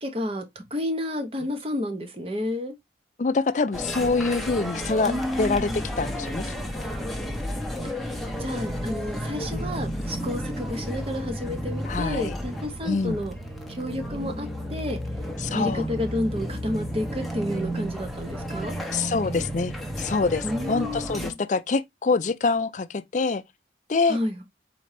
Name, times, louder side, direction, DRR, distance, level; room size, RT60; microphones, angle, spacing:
voice 1, 0.0-2.7 5.1-5.8 7.8-7.9 8.4-13.3 13.7-15.0 15.5-18.8 20.4-21.4 24.1-24.4, left 1 dB, 30° right, 0.9 m, -30 dB
voice 2, 3.2-5.1 5.4-6.4 6.7-6.8 9.5-9.7 11.9-12.4 12.8-13.2 15.4-15.9 18.9-23.4 23.9-24.2, left 4 dB, 40° left, 0.4 m, -25 dB
sound 1, 3.7-21.3, equal, ahead, 0.8 m, -32 dB
4.3 x 3.8 x 3.2 m
head